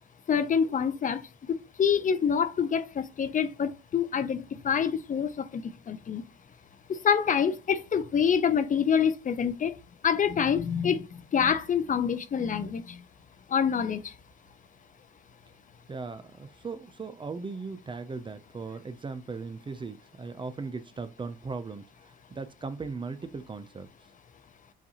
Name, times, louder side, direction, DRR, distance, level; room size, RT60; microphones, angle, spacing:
voice 1, 0.3-1.2 1.5-6.2 6.9-9.8 10.0-11.1 11.3-13.0 13.5-14.1, left 7 dB, 40° left, 0.6 m, -26 dB
voice 2, 15.9-23.9, right 4 dB, 25° right, 0.5 m, -38 dB
7.1 x 2.5 x 2.8 m
cardioid pair, 90°, 20 cm